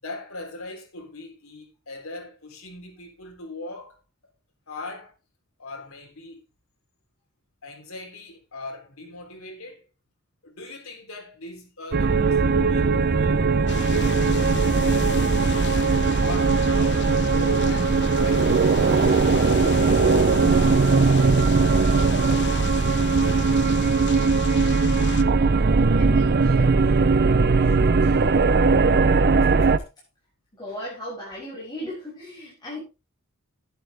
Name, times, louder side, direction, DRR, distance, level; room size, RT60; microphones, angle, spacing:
voice 1, 0.0-4.0 4.7-5.2 5.6-6.5 7.6-9.8 10.4-14.4 16.2-18.5 19.0-20.1 22.9-23.5 27.2-28.2, left 2 dB, 70° left, 3.6 m, -40 dB
sound 1, 11.9-29.8, right 4 dB, 50° right, 0.7 m, -19 dB
sound 2, 13.7-25.2, left 6 dB, 55° left, 0.9 m, -35 dB
voice 2, 25.9-27.0 29.6-29.7 30.5-32.8, left 1 dB, 20° left, 7.5 m, -37 dB
11.5 x 11.0 x 3.5 m
head